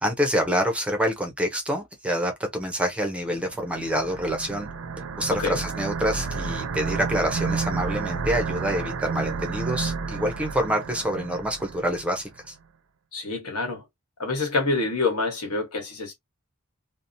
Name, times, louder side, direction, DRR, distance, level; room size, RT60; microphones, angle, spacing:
voice 1, 0.0-4.7 5.2-12.5, equal, 5° right, 0.5 m, -27 dB
sound 1, 3.5-12.1, right 4 dB, 65° right, 0.5 m, -31 dB
voice 2, 13.1-13.8 14.2-16.1, left 3 dB, 75° left, 1.2 m, -26 dB
2.7 x 2.0 x 2.5 m
head